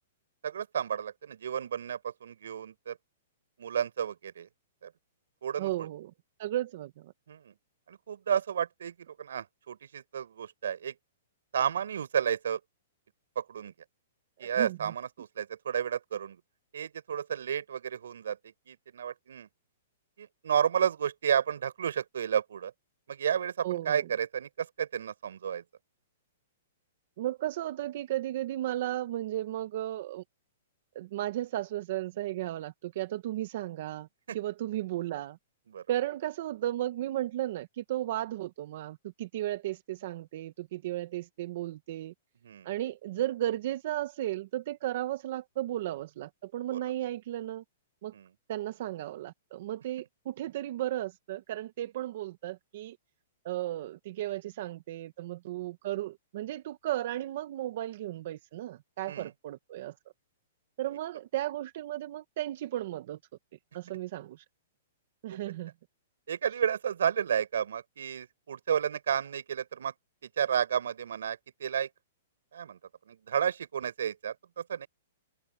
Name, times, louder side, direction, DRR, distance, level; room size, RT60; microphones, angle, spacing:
voice 1, 0.4-3.0 3.6-4.5 4.8-4.9 5.4-5.9 7.3-7.5 7.9-10.9 11.5-12.6 13.3-13.7 14.4-16.4 16.7-19.5 20.2-22.7 23.1-25.6 34.3-34.4 35.7-35.8 42.4-42.7 46.7-46.8 48.1-48.3 59.1-59.3 65.3-65.4 66.3-69.9 70.4-71.9 72.5-72.8 73.1-74.9, right 8 dB, 80° right, 6.4 m, -32 dB
voice 2, 5.6-6.1 6.4-7.1 14.4-14.9 23.6-24.0 27.2-30.2 30.9-34.1 34.3-35.4 35.9-42.1 42.6-47.6 48.0-48.1 48.5-53.0 53.4-59.9 60.8-63.2 63.7-64.4 65.2-65.7, right 13 dB, 45° right, 1.0 m, -34 dB
hypercardioid pair, 165°, 0 cm